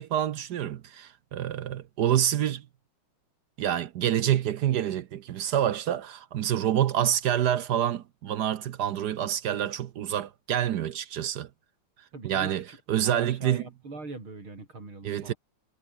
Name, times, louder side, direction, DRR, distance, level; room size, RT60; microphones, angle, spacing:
voice 1, 0.0-2.6 3.6-11.5 12.2-13.6 15.0-15.3, right 10 dB, 65° right, 1.2 m, -27 dB
voice 2, 12.1-12.8 13.0-15.4, right 3 dB, 85° right, 7.0 m, -42 dB
omnidirectional pair, 2.2 m